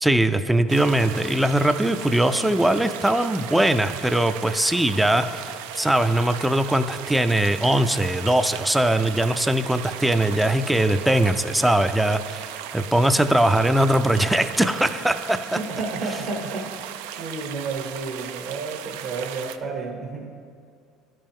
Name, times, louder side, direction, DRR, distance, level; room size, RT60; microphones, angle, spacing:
voice 1, 0.0-15.4, right 1 dB, 5° right, 10 dB, 0.3 m, -21 dB
sound 1, 0.7-19.6, right 10 dB, 90° right, 0.3 m, -37 dB
voice 2, 15.5-16.8 17.1-20.2, right 3 dB, 60° right, 0 dB, 1.0 m, -31 dB
11.5 x 5.4 x 3.6 m, 2.2 s
supercardioid pair, 100°, 0 cm